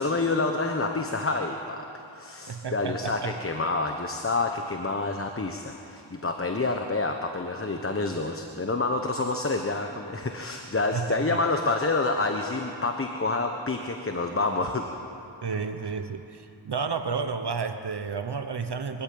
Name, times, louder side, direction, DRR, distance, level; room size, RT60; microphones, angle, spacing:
voice 1, 0.0-1.9 2.1-14.9, left 3 dB, 25° left, 4 dB, 1.1 m, -28 dB
voice 2, 2.5-3.3 10.9-11.4 15.4-19.0, right 5 dB, 55° right, 8 dB, 1.0 m, -31 dB
23.5 x 14.0 x 8.6 m, 2.8 s
wide cardioid pair, 100°, 48 cm